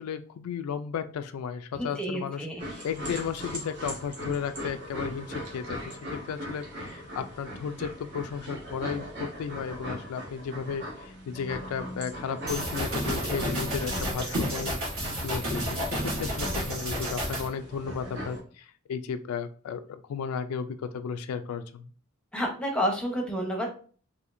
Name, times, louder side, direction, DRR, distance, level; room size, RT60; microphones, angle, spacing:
voice 1, 0.0-2.5 2.8-21.9, left 6 dB, 85° left, 9 dB, 0.3 m, -34 dB
voice 2, 1.8-2.6 22.3-23.7, equal, 5° left, 1 dB, 0.7 m, -30 dB
sound 1, 2.6-18.4, equal, 55° right, 1.4 m, -39 dB
sound 2, 12.5-17.5, equal, 70° right, 1.8 m, -31 dB
4.2 x 2.6 x 2.5 m, 0.42 s
head